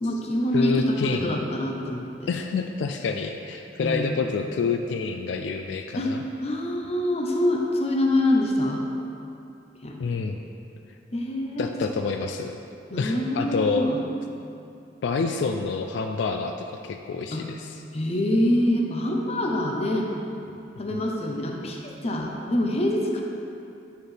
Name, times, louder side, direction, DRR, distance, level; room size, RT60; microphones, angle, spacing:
voice 1, 0.0-2.3 3.8-4.1 5.9-6.1 6.4-8.9 9.8-10.0 11.1-11.8 12.9-14.0 17.3-17.4 17.9-20.1 20.8-23.2, left 1 dB, 35° left, 0 dB, 0.7 m, -25 dB
voice 2, 0.5-1.5 2.3-6.2 10.0-10.4 11.6-12.6 13.0-13.9 15.0-17.7 20.9-21.0, left 4 dB, 75° left, 5 dB, 0.3 m, -28 dB
9.2 x 4.5 x 3.3 m, 2.7 s
head